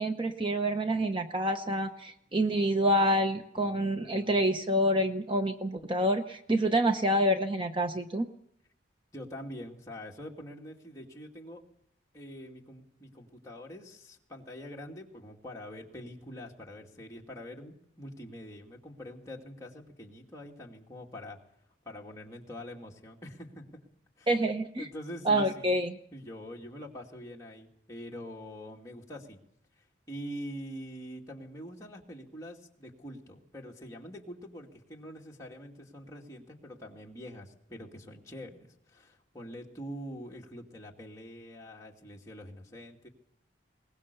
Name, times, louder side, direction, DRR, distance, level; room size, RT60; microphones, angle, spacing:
voice 1, 0.0-8.3 24.3-24.9 25.2-26.0, right 1 dB, 25° right, 6 dB, 0.8 m, -27 dB
voice 2, 3.6-4.4 9.1-11.7 12.1-21.4 21.8-23.7 24.2-24.3 24.8-25.8 26.1-29.4 29.8-43.1, equal, 15° left, -2 dB, 2.4 m, -45 dB
22.0 x 20.0 x 6.9 m, 0.75 s
head